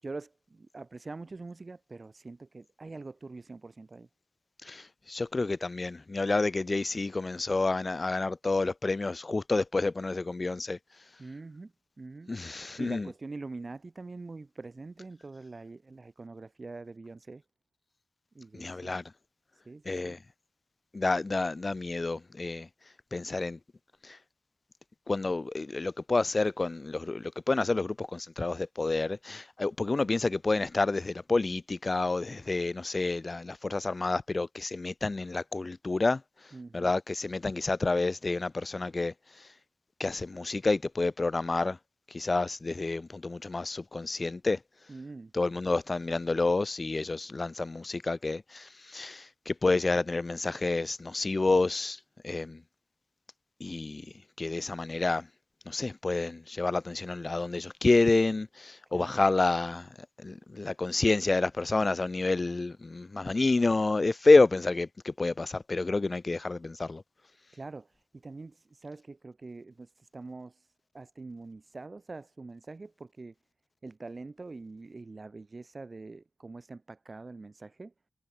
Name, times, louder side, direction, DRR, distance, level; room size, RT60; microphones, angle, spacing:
voice 1, 0.0-4.1 11.2-12.3 12.8-17.4 18.3-18.9 19.5-20.2 36.5-36.9 44.9-45.3 58.9-59.3 67.5-73.3 73.8-77.9, right 3 dB, 40° right, 4.9 m, -44 dB
voice 2, 4.6-10.8 12.3-13.1 18.5-19.0 19.9-20.2 20.9-22.7 23.1-23.6 24.0-24.2 25.1-36.2 36.7-39.5 40.0-41.8 42.1-44.6 45.3-52.6 53.6-54.1 54.4-55.3 55.7-59.9 60.2-67.0, left 3 dB, 40° left, 0.3 m, -29 dB
cardioid pair, 60°, 0 cm